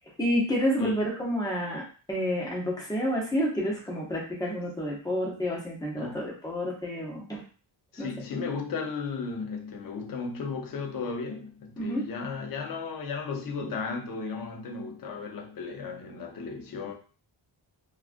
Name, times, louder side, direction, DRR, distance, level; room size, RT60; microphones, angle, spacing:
voice 1, 0.2-1.8 2.1-7.4 8.0-8.1 11.8-12.0 13.6-13.7, equal, 10° left, 0.6 m, -29 dB
voice 2, 7.9-16.9, left 5 dB, 45° left, 0.5 m, -35 dB
2.4 x 2.3 x 2.4 m
wide cardioid pair, 175°, 49 cm